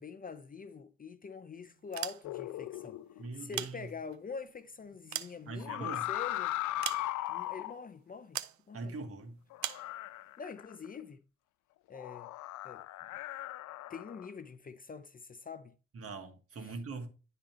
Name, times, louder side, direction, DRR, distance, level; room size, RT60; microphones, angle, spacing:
voice 1, 0.0-3.0 3.3-6.6 7.3-8.4 8.7-9.0 10.4-11.2 11.9-12.3 12.6-12.8 13.9-15.8 16.6-16.8, left 5 dB, 30° left, 0.6 m, -45 dB
sound 1, 1.8-2.6 3.3-4.3 4.8-6.0 6.8-7.5 8.3-8.6 9.6-9.9, right 12 dB, 70° right, 0.7 m, -40 dB
sound 2, 2.2-3.3 5.6-7.8 9.5-10.9 11.9-14.3, left 15 dB, 75° left, 0.5 m, -38 dB
voice 2, 3.2-3.9 5.5-6.1 8.7-9.4 15.9-17.1, right 3 dB, 50° right, 1.6 m, -42 dB
10.5 x 4.0 x 4.4 m
cardioid pair, 90°, 30 cm